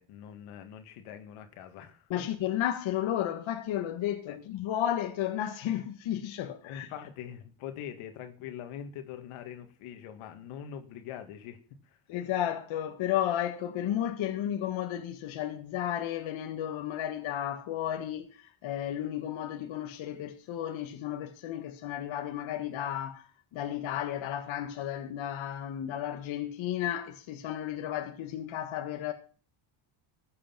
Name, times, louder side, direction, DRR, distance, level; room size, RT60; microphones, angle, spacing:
voice 1, 0.0-2.1 4.3-4.4 6.6-11.6 11.9-12.0, left 9 dB, 90° left, 2.2 m, -43 dB
voice 2, 2.1-6.9 12.1-29.1, left 11 dB, 70° left, 1.7 m, -33 dB
14.5 x 8.5 x 6.0 m
cardioid pair, 110°, 49 cm